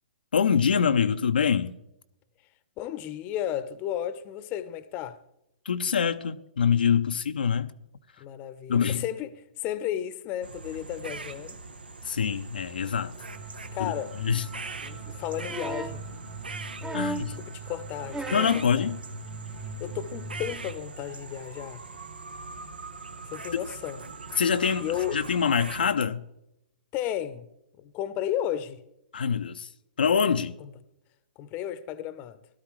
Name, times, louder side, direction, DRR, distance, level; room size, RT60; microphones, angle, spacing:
voice 1, 0.3-1.7 5.7-7.7 8.7-9.0 12.0-13.1 13.8-13.9 14.2-14.4 16.9-17.4 18.3-19.0 23.5-23.6 24.4-24.9 25.1-26.2 29.1-29.7 30.0-30.6, left 7 dB, 75° left, 0.5 m, -24 dB
voice 2, 2.8-5.2 8.2-11.6 13.7-14.2 14.8-16.0 17.4-18.2 18.5-18.9 19.8-21.8 23.3-24.0 24.8-25.2 26.9-27.5 27.8-28.8 30.6-30.7 31.4-32.4, left 11 dB, 30° left, 0.8 m, -33 dB
sound 1, 10.4-25.9, right 4 dB, 85° right, 1.0 m, -42 dB
sound 2, 13.3-20.7, right 2 dB, 60° right, 2.3 m, -42 dB
sound 3, 15.5-16.0 16.8-17.4 18.1-18.6 19.8-19.9, right 3 dB, 10° right, 0.7 m, -34 dB
17.5 x 12.5 x 3.2 m
figure-of-eight pair, 120°, 5 cm